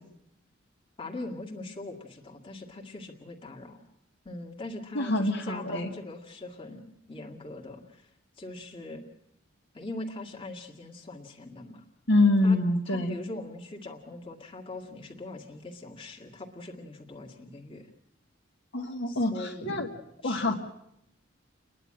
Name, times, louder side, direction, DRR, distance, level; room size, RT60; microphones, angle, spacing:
voice 1, 1.0-3.8 4.2-6.8 7.1-8.1 8.4-9.0 9.7-11.9 12.4-12.6 12.9-17.9 19.1-19.9 20.2-20.5, left 2 dB, 25° left, 2 dB, 2.0 m, -41 dB
voice 2, 4.9-5.9 12.1-13.2 18.7-19.9 20.2-20.5, left 2 dB, 60° left, 2 dB, 2.0 m, -25 dB
30.0 x 11.0 x 8.9 m, 0.78 s
head